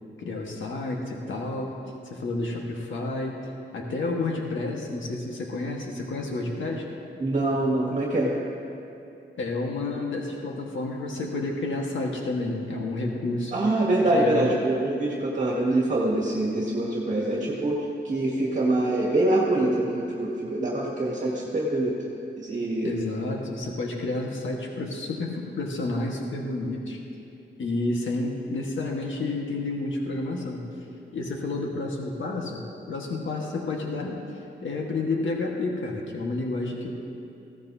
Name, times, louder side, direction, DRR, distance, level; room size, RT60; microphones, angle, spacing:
voice 1, 0.2-1.8 2.0-3.4 3.7-6.8 9.4-13.5 14.1-14.5 22.8-27.0 27.6-30.6 31.1-36.9, left 2 dB, 80° left, -1 dB, 1.5 m, -30 dB
voice 2, 7.2-8.4 13.5-21.9 22.4-22.9, right 1 dB, 40° right, -4 dB, 2.0 m, -25 dB
20.0 x 16.0 x 2.8 m, 2.7 s
wide cardioid pair, 170°, 20 cm